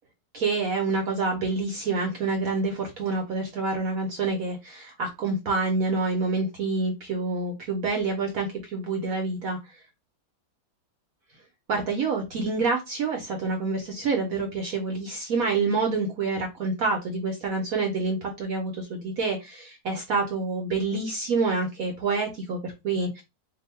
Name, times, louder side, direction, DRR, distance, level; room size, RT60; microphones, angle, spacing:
voice 1, 0.3-9.6 11.7-23.2, right 3 dB, 65° right, 2 dB, 1.0 m, -27 dB
2.7 x 2.6 x 4.2 m, 0.23 s
omnidirectional pair, 1.8 m